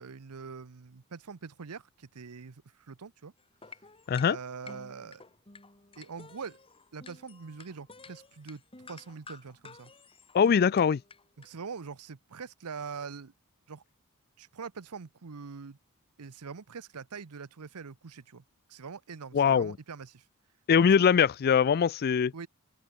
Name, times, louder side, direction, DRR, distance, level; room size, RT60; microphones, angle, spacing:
voice 1, 0.0-3.3 3.6-3.9 4.3-5.2 6.0-6.6 6.9-9.9 11.4-13.3 13.7-13.8 14.4-15.8 16.2-18.4 18.7-20.3 20.8-21.1 22.3-22.5, right 5 dB, 85° right, 0.7 m, -43 dB
sound 1, 3.4-11.5, left 3 dB, 25° left, 3.3 m, -52 dB
voice 2, 10.3-11.0 19.3-19.7 20.7-22.3, left 7 dB, 45° left, 0.3 m, -22 dB
open air
head